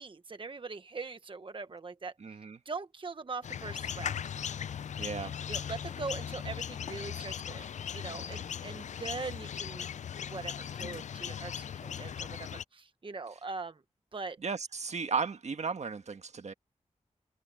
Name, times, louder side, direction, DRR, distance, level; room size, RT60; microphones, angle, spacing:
voice 1, 0.0-2.1 2.6-4.2 5.5-9.9 10.2-13.8 14.1-14.4, right 4 dB, 45° right, 1.1 m, -41 dB
voice 2, 2.2-2.6 5.0-5.3 14.4-16.5, right 5 dB, 70° right, 1.5 m, -35 dB
sound 1, 3.4-12.6, left 8 dB, 90° left, 0.4 m, -38 dB
wide cardioid pair, 70°, 12 cm